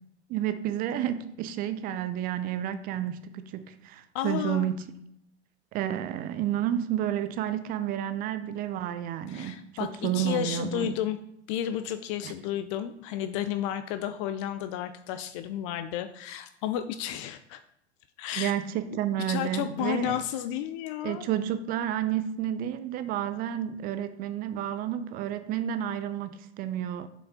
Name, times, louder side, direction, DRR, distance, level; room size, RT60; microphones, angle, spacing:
voice 1, 0.3-4.8 5.7-10.9 12.2-12.3 18.4-20.2 21.0-27.1, right 10 dB, 25° right, 0.5 m, -30 dB
voice 2, 4.1-4.7 9.3-11.2 11.5-17.6 18.2-18.5 19.2-21.3, left 11 dB, 30° left, 0.4 m, -32 dB
7.1 x 5.5 x 4.2 m
figure-of-eight pair, 100°, 35 cm